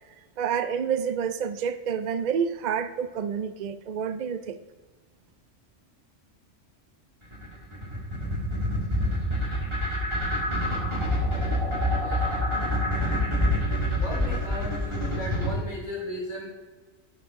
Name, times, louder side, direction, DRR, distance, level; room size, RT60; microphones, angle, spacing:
voice 1, 0.4-4.6, right 7 dB, 80° right, 11 dB, 0.4 m, -28 dB
sound 1, 7.3-15.5, left 1 dB, 20° right, 1.9 m, -26 dB
voice 2, 12.9-13.3 13.8-16.5, equal, 75° left, -5 dB, 3.6 m, -36 dB
11.0 x 6.6 x 3.6 m, 1.3 s
omnidirectional pair, 1.3 m